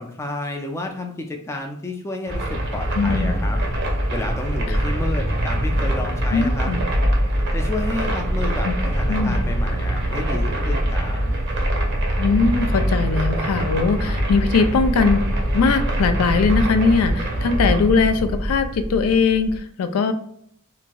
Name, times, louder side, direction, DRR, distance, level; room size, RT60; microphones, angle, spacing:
voice 1, 0.0-6.7 7.5-11.2, left 2 dB, 15° left, 2 dB, 0.3 m, -31 dB
sound 1, 2.3-19.6, right 1 dB, 55° right, 0.7 m, -23 dB
voice 2, 2.9-3.4 4.7-4.8 6.3-6.8 8.6-8.7 9.1-9.4 12.2-15.2 15.5-20.1, left 4 dB, 90° left, 9 dB, 0.4 m, -20 dB
2.9 x 2.6 x 2.2 m, 0.67 s
head